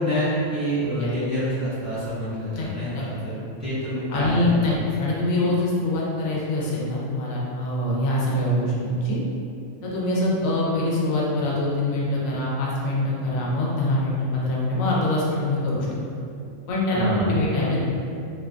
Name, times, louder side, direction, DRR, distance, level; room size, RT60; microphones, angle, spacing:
voice 1, 0.0-5.1 16.9-17.3, equal, 15° right, -15 dB, 0.7 m, -27 dB
voice 2, 4.1-9.2 9.8-15.9 16.7-17.9, left 1 dB, 85° left, -5 dB, 1.0 m, -24 dB
2.5 x 2.2 x 2.4 m, 2.5 s
omnidirectional pair, 1.4 m